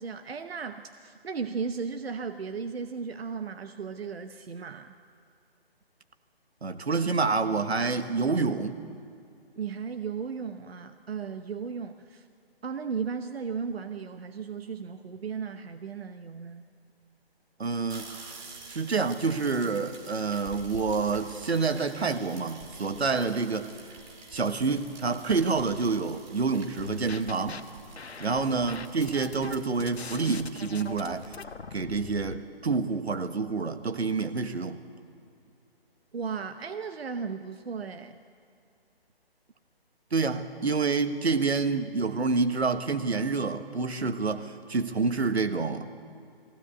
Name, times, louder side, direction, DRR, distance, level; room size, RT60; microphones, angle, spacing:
voice 1, 0.0-4.9 9.6-12.3 12.6-16.6 28.2-28.4 36.1-38.2, right 6 dB, 70° right, 8 dB, 1.0 m, -35 dB
voice 2, 6.6-8.8 17.6-18.1 18.7-23.7 24.3-27.6 28.2-31.4 31.7-34.8 40.1-45.9, right 4 dB, 90° right, 9 dB, 1.5 m, -28 dB
sound 1, 17.9-31.3, right 3 dB, 30° right, 2.7 m, -48 dB
sound 2, 26.8-27.6 28.0-32.4, left 5 dB, 85° left, 1.2 m, -41 dB
20.5 x 16.5 x 8.3 m, 2.5 s
hypercardioid pair, 160°, 31 cm